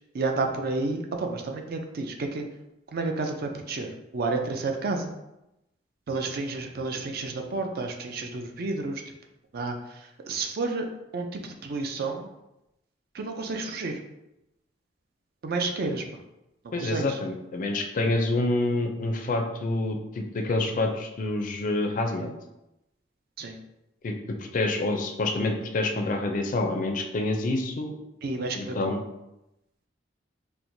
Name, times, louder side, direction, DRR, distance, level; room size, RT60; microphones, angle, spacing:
voice 1, 0.1-2.5 2.9-5.1 6.1-9.0 9.5-10.9 11.1-12.3 13.1-14.0 15.4-16.1 16.6-17.2 23.4-23.6 28.2-29.0, right 3 dB, 55° right, 4 dB, 0.4 m, -31 dB
voice 2, 16.7-22.3 24.0-24.1 24.4-27.9 28.5-29.0, left 2 dB, 45° left, 4 dB, 0.4 m, -27 dB
4.4 x 2.1 x 2.6 m, 0.90 s
head